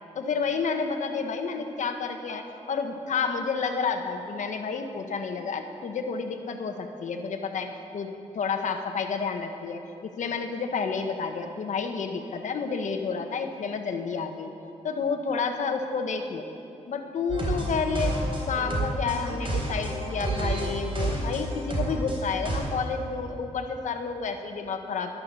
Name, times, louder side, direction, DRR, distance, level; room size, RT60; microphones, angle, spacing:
voice 1, 0.1-14.5 14.8-16.5 16.9-18.1 18.5-25.2, left 5 dB, 75° left, 5 dB, 1.1 m, -30 dB
sound 1, 17.3-22.6, right 1 dB, 45° right, 3.6 m, -29 dB
11.5 x 11.5 x 6.9 m, 2.7 s
wide cardioid pair, 110°, 13 cm